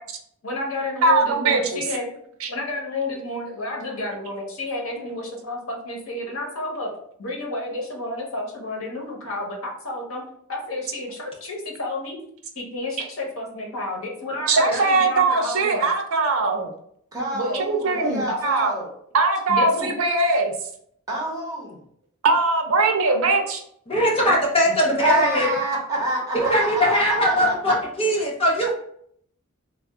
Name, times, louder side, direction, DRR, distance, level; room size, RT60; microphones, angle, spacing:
voice 1, 0.4-2.1 2.5-6.9 7.2-10.2 10.5-12.2 12.6-15.9 17.3-17.6 18.3-18.4 19.5-19.9 24.1-24.2, left 2 dB, 75° left, 0 dB, 1.0 m, -30 dB
voice 2, 1.0-1.8 2.4-2.5 13.0-13.1 14.5-16.7 17.5-18.7 19.1-20.5 22.2-23.6, right 3 dB, 75° right, 4 dB, 0.6 m, -21 dB
voice 3, 17.1-18.9 21.1-21.8 24.7-24.8 25.0-27.5, right 1 dB, 15° right, -4 dB, 1.1 m, -27 dB
voice 4, 23.9-25.5 26.5-28.7, equal, 25° left, -2 dB, 0.8 m, -20 dB
3.4 x 2.3 x 3.6 m, 0.67 s
head